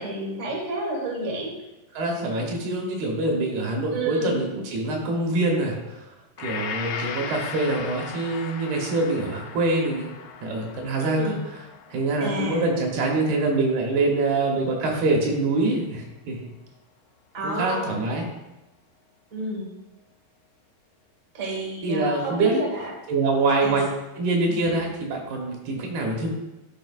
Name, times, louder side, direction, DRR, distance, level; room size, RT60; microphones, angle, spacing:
voice 1, 0.0-1.5 3.9-4.4 11.0-11.4 12.2-12.6 17.3-18.0 19.3-19.7 21.3-22.9 23.6-23.7, right 1 dB, 40° right, -2 dB, 1.1 m, -29 dB
voice 2, 1.9-6.0 6.4-10.1 10.4-11.4 11.9-16.4 17.4-18.3 21.8-22.6 23.1-23.9 24.2-26.3, right 2 dB, 75° right, 0 dB, 3.0 m, -25 dB
Gong, 6.4-14.7 15.1-15.2, left 7 dB, 85° left, 2.6 m, -38 dB
12.0 x 4.9 x 2.5 m, 1.0 s
omnidirectional pair, 4.7 m